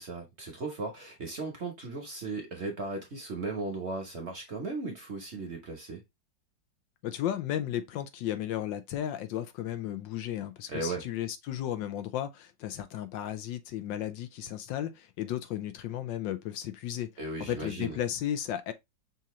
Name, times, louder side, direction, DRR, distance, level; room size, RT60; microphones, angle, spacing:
voice 1, 0.0-6.0 10.7-11.0 17.2-18.0, right 3 dB, 45° right, 0.9 m, -36 dB
voice 2, 7.0-17.1 17.4-18.7, left 11 dB, 80° left, 1.4 m, -34 dB
5.6 x 2.5 x 3.0 m
omnidirectional pair, 2.0 m